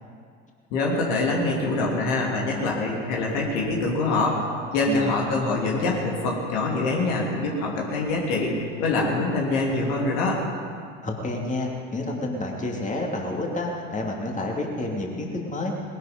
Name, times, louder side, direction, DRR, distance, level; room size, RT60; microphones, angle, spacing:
voice 1, 0.7-4.4 4.7-10.4, left 2 dB, 65° left, -2 dB, 3.3 m, -24 dB
voice 2, 4.9-5.2 11.0-15.7, left 2 dB, 20° left, -1 dB, 2.8 m, -29 dB
20.0 x 12.0 x 5.3 m, 2.2 s
figure-of-eight pair, 65°, 38 cm